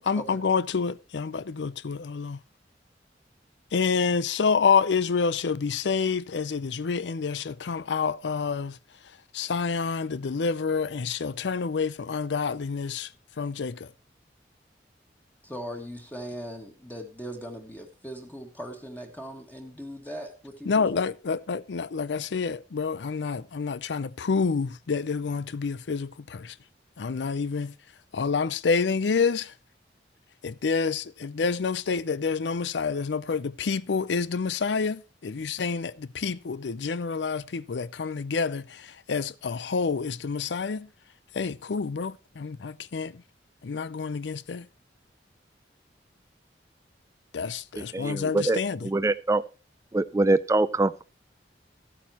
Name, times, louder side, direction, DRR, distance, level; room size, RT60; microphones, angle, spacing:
voice 1, 0.0-2.4 3.7-8.8 9.0-13.9 20.7-26.6 27.0-27.8 28.1-29.5 30.4-40.9 41.3-43.2 43.6-44.7 47.3-48.9, left 5 dB, 85° left, 0.5 m, -28 dB
voice 2, 15.4-21.1, equal, 10° left, 1.7 m, -39 dB
voice 3, 47.9-49.4 49.9-51.0, right 2 dB, 15° right, 0.4 m, -24 dB
15.0 x 8.5 x 2.9 m
head